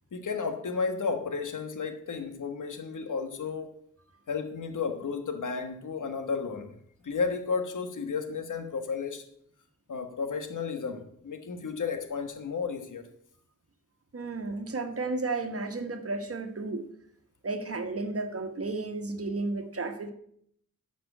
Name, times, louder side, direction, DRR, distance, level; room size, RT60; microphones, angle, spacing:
voice 1, 0.1-3.7 4.3-6.7 7.0-9.2 9.9-13.0, left 5 dB, 85° left, 1.4 m, -33 dB
voice 2, 14.1-16.8 17.4-20.1, right 3 dB, 50° right, 1.4 m, -33 dB
11.0 x 6.1 x 7.8 m
wide cardioid pair, 110°, 30 cm